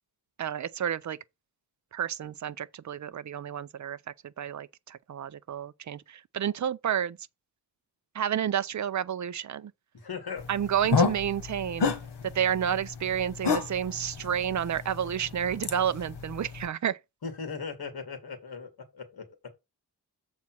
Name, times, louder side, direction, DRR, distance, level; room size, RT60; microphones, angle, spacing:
voice 1, 0.4-1.2 1.9-4.0 4.4-7.2 8.1-9.7 10.5-11.9 12.2-17.0, right 9 dB, 45° right, 0.5 m, -30 dB
voice 2, 9.9-10.5 17.2-19.4, left 5 dB, 60° left, 2.3 m, -38 dB
sound 1, 10.4-16.7, left 5 dB, 80° left, 1.7 m, -31 dB
7.2 x 4.1 x 6.2 m
wide cardioid pair, 145°, 41 cm